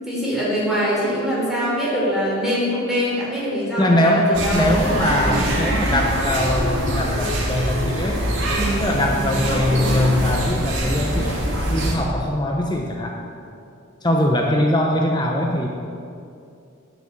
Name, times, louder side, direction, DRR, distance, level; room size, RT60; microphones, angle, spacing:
voice 1, 0.0-4.7 5.1-5.4 8.5-8.7, equal, ahead, -7 dB, 3.9 m, -23 dB
voice 2, 3.8-8.2 8.8-13.2 14.0-15.7, left 1 dB, 20° left, 1 dB, 0.8 m, -21 dB
sound 1, 4.3-12.0, equal, 65° right, 2.3 m, -23 dB
10.0 x 9.3 x 8.6 m, 2.5 s
head